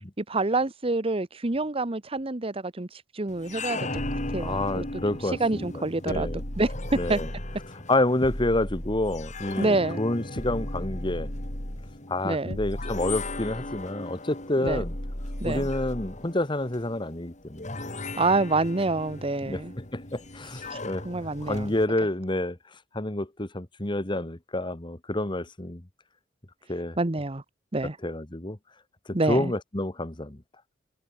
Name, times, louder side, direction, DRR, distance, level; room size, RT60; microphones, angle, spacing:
voice 1, 0.2-3.9 4.3-4.8 5.4-7.2 9.6-10.0 12.2-12.6 14.6-14.8 15.4-15.7 18.2-19.7 20.7-20.8 21.0-21.7 27.0-27.4 27.7-28.0 29.1-29.5, right 2 dB, 30° right, 1.1 m, -27 dB
sound 1, 3.3-21.9, left 2 dB, 40° left, 3.9 m, -39 dB
sound 2, 3.9-5.3 6.1-7.7 8.2-9.6 10.4-12.0 12.5-13.9 14.6-16.3, equal, 55° left, 5.0 m, -36 dB
voice 2, 4.4-5.7 6.0-6.4 6.9-7.3 7.9-11.3 12.1-14.9 15.4-18.0 19.4-21.1 21.4-22.6 22.9-25.8 26.7-27.0 28.0-28.6 29.3-30.4, left 1 dB, 25° left, 1.5 m, -28 dB
head